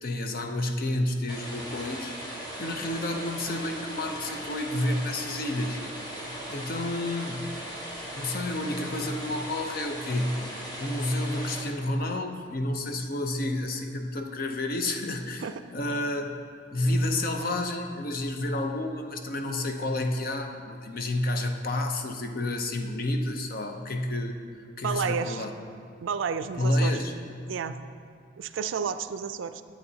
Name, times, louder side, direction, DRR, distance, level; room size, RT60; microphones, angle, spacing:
voice 1, 0.0-2.2 2.6-5.8 6.5-7.5 8.1-10.4 10.8-16.4 16.7-24.4 24.8-25.5 26.6-27.2, left 1 dB, 50° left, 4 dB, 0.6 m, -30 dB
sound 1, 1.3-11.6, right 1 dB, 20° left, 1.2 m, -38 dB
voice 2, 24.8-25.4 26.0-26.9 27.5-27.8 28.4-29.6, right 6 dB, 80° right, 11 dB, 0.4 m, -31 dB
10.5 x 8.4 x 2.8 m, 2.2 s
head